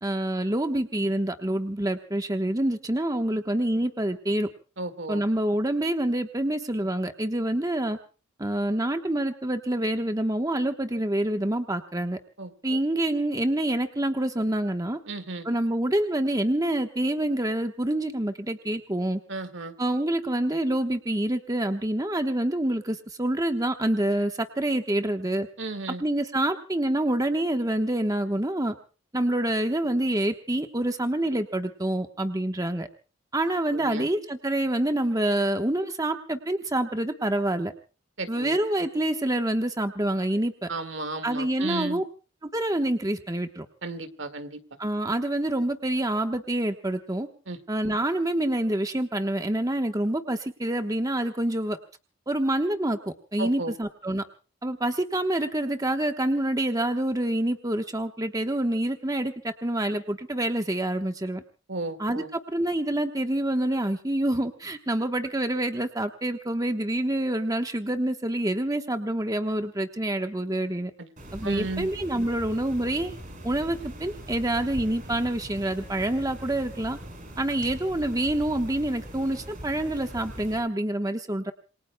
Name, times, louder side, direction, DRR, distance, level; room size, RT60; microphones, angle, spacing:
voice 1, 0.0-4.5 5.1-8.0 8.4-12.2 12.6-15.0 15.4-19.2 19.8-25.5 26.0-28.7 29.1-32.9 33.3-37.7 38.3-40.7 41.2-42.0 42.4-43.7 44.8-47.3 47.7-51.8 52.3-53.0 53.3-54.2 54.6-61.4 62.0-70.9 71.3-73.1 73.4-77.0 77.4-81.5, right 1 dB, 15° right, 7 dB, 1.1 m, -27 dB
voice 2, 4.8-5.2 12.4-12.8 15.1-15.5 19.3-19.7 25.6-26.0 33.7-34.1 38.2-38.6 40.7-42.0 43.8-44.6 47.5-47.6 53.4-53.7 61.7-62.3 71.0-71.1 71.4-71.9, right 2 dB, 65° right, 10 dB, 1.9 m, -34 dB
sound 1, 71.2-80.6, equal, 40° right, 5.3 m, -41 dB
28.0 x 22.5 x 2.2 m, 0.36 s
head